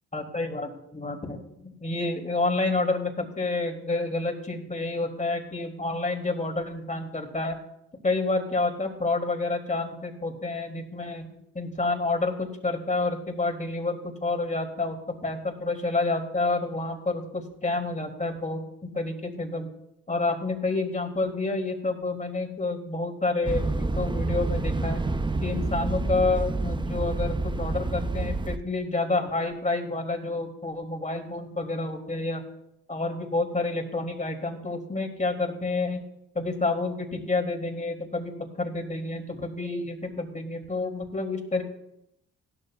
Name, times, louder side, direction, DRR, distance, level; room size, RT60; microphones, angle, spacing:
voice 1, 0.1-7.6 8.0-11.2 11.5-18.6 18.9-19.7 20.1-25.0 25.4-32.4 32.9-36.0 36.3-41.6, left 3 dB, 20° left, 3 dB, 2.9 m, -29 dB
sound 1, 23.4-28.6, right 2 dB, 15° right, 0.6 m, -28 dB
16.5 x 12.0 x 2.4 m, 0.80 s
supercardioid pair, 55°, 34 cm